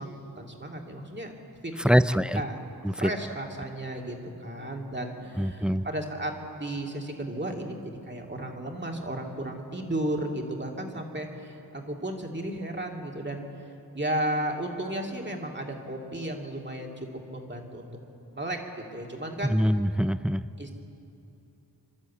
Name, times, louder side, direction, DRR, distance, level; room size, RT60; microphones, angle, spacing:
voice 1, 0.0-1.3 1.6-1.7 2.1-2.6 2.9-13.4 13.9-17.9 18.3-18.6 18.9-19.6 20.6-20.7, right 1 dB, 30° right, 1 dB, 2.3 m, -34 dB
voice 2, 1.8-2.4 2.8-3.1 5.4-5.9 19.5-20.4, equal, ahead, 14 dB, 0.4 m, -24 dB
25.5 x 12.5 x 8.4 m, 2.9 s
wide cardioid pair, 80°, 39 cm